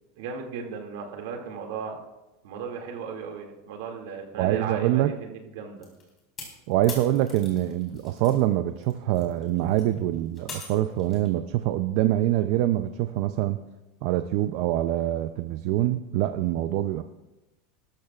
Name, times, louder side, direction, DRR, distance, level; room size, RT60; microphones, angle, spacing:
voice 1, 0.1-2.0 2.4-5.9, right 6 dB, 65° right, 2 dB, 2.3 m, -36 dB
voice 2, 4.4-5.2 6.7-13.6 14.0-17.0, right 13 dB, 45° right, 9 dB, 0.5 m, -25 dB
sound 1, 5.8-8.4 8.8-11.3, left 4 dB, 20° left, 3.7 m, -42 dB
19.5 x 13.0 x 2.4 m, 1.0 s
supercardioid pair, 175°, 0 cm